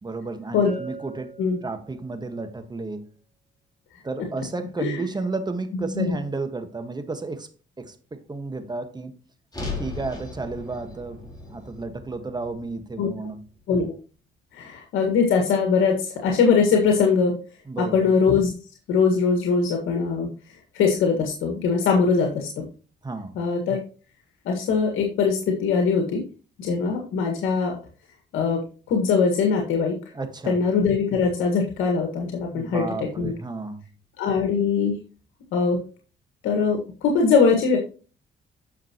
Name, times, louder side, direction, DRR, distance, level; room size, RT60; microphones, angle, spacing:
voice 1, 0.0-1.3 1.6-3.1 4.0-7.5 7.8-9.2 9.7-13.4 17.6-18.1 23.0-23.3 30.1-30.6 32.5-33.8, right 3 dB, 20° right, 1.5 m, -32 dB
Bell, 0.6-2.3, right 3 dB, 45° right, 4.6 m, -41 dB
voice 2, 5.7-6.2 13.0-13.1 13.7-13.9 14.5-17.4 17.8-18.5 18.9-20.3 20.7-22.6 23.4-23.8 24.5-26.2 26.6-27.8 28.3-28.6 28.9-30.0 30.5-32.8 33.2-33.3 34.2-35.0 35.5-35.8 36.4-37.8, left 5 dB, 85° left, 1.8 m, -21 dB
Thalisman of retribution, 9.5-13.8, left 3 dB, 20° left, 4.0 m, -37 dB
9.4 x 6.5 x 3.0 m
cardioid pair, 90°, 20 cm